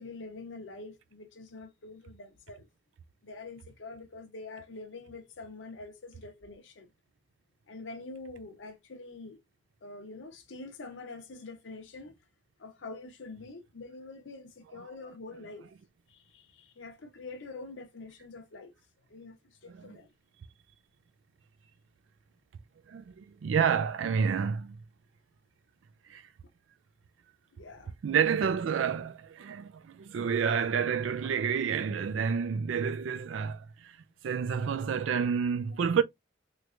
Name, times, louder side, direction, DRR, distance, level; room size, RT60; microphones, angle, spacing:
voice 1, 0.0-2.7 3.2-6.9 7.7-9.4 9.8-12.1 12.6-15.7 16.1-18.7 19.1-20.1 27.6-27.9, left 3 dB, 85° left, 0.7 m, -45 dB
voice 2, 19.7-20.0 22.9-24.8 26.0-26.3 28.0-34.0 34.2-36.0, right 6 dB, 85° right, 0.4 m, -29 dB
3.2 x 3.1 x 2.4 m
head